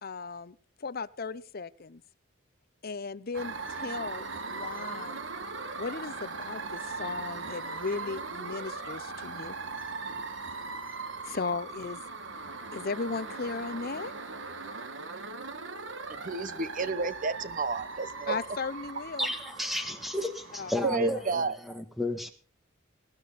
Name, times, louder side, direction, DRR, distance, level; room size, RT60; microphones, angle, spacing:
voice 1, 0.0-2.0 2.8-5.2 5.8-9.6 11.2-12.0 12.7-14.1 18.3-19.3 20.6-20.7 21.0-21.2, left 4 dB, 50° left, 0.7 m, -36 dB
sound 1, 3.3-21.3, right 4 dB, 65° right, 1.6 m, -39 dB
voice 2, 16.1-18.4 20.8-21.6, right 4 dB, 40° right, 1.0 m, -31 dB
voice 3, 19.2-22.3, left 1 dB, ahead, 1.8 m, -33 dB
21.0 x 11.5 x 4.1 m
head